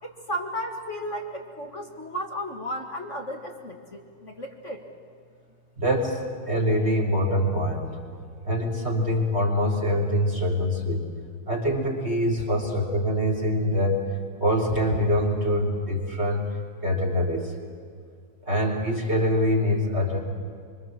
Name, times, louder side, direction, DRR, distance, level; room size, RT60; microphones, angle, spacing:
voice 1, 0.0-4.8, equal, 30° left, 2 dB, 1.6 m, -34 dB
voice 2, 5.8-6.2 6.5-7.9 8.4-11.0 11.5-14.0 14.4-16.4 16.8-17.5 18.5-20.2, equal, 20° right, -1 dB, 3.5 m, -24 dB
26.0 x 25.5 x 7.5 m, 2.2 s
omnidirectional pair, 3.5 m